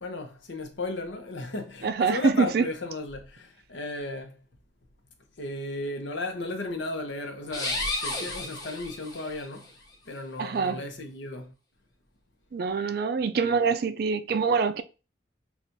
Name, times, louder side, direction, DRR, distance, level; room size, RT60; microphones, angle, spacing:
voice 1, 0.0-4.4 5.4-9.7 10.1-11.5, left 2 dB, 75° left, 0.8 m, -35 dB
voice 2, 1.8-2.6 10.4-10.8 12.5-14.8, right 5 dB, 55° right, 0.3 m, -25 dB
sound 1, 7.5-9.5, left 2 dB, 20° left, 0.7 m, -32 dB
6.0 x 2.4 x 2.6 m
head